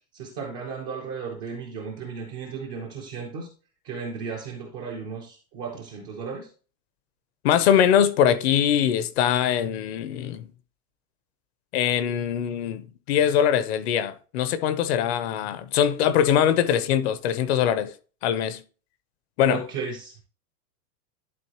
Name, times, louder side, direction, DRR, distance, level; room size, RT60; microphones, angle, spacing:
voice 1, 0.1-3.5 3.8-6.5 19.5-20.2, right 5 dB, 15° right, 0.4 m, -35 dB
voice 2, 7.4-10.5 11.7-17.9 18.2-18.6 19.4-19.6, left 9 dB, 45° left, 0.7 m, -22 dB
11.0 x 4.1 x 2.9 m
supercardioid pair, 165°, 47 cm